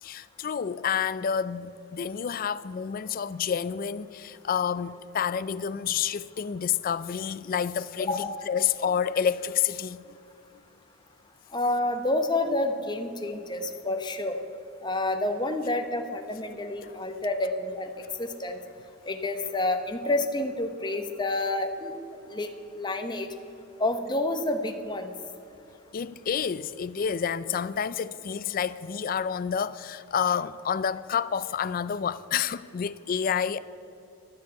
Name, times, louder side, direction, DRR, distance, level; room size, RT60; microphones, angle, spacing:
voice 1, 0.0-10.2 16.8-16.9 25.9-33.6, left 7 dB, 45° left, 0.3 m, -29 dB
voice 2, 11.5-14.4 14.8-17.9 18.2-18.6 19.1-21.9 22.3-22.5 22.8-23.3 23.8-25.1, left 2 dB, 20° left, 0.9 m, -29 dB
12.5 x 7.4 x 8.4 m
head